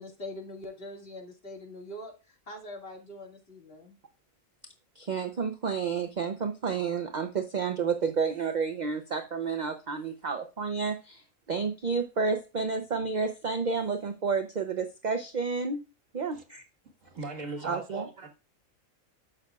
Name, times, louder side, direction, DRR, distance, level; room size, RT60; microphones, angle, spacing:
voice 1, 0.0-4.0, left 1 dB, 45° left, 2.3 m, -43 dB
voice 2, 5.0-15.8 16.1-16.6 17.6-18.0, right 5 dB, 40° right, 0.7 m, -30 dB
voice 3, 17.0-18.3, right 3 dB, 75° right, 2.0 m, -39 dB
12.0 x 6.3 x 2.4 m
omnidirectional pair, 1.4 m